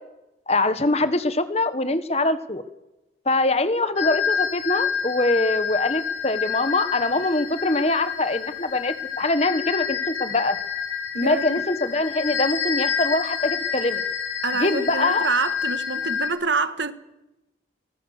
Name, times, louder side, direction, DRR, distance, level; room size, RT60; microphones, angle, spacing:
voice 1, 0.5-2.6 3.2-10.6 11.1-14.0 14.6-15.3, left 2 dB, 35° left, 1.4 m, -23 dB
sound 1, 4.0-16.3, left 7 dB, 85° left, 5.1 m, -28 dB
voice 2, 11.1-11.6 14.4-16.9, right 4 dB, 80° right, 1.7 m, -26 dB
23.5 x 21.0 x 6.7 m
head